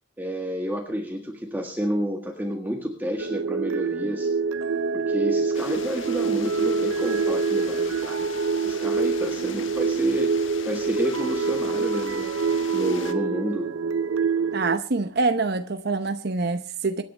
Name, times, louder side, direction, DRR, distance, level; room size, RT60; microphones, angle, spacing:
voice 1, 0.2-4.3 4.9-8.3 8.6-12.3 12.7-13.7, equal, 10° right, 1.7 m, -30 dB
sound 1, 3.2-14.8, right 5 dB, 90° right, 0.7 m, -26 dB
sound 2, 5.5-13.1, left 6 dB, 75° left, 1.5 m, -41 dB
voice 2, 14.5-17.0, right 3 dB, 55° right, 0.8 m, -25 dB
26.0 x 10.0 x 3.4 m
head